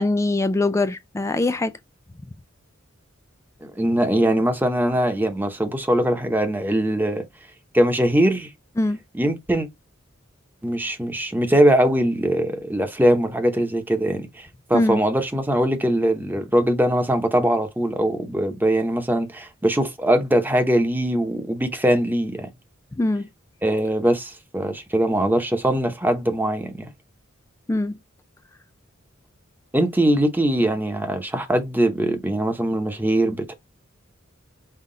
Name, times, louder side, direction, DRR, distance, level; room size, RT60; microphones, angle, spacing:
voice 1, 0.0-1.7 8.8-9.0 14.7-15.0 23.0-23.3 27.7-27.9, left 2 dB, 15° left, 0.3 m, -22 dB
voice 2, 3.6-7.2 7.7-8.5 9.1-9.7 10.6-22.5 23.6-26.7 29.7-33.5, right 1 dB, 10° right, 0.8 m, -21 dB
5.7 x 2.3 x 3.8 m
head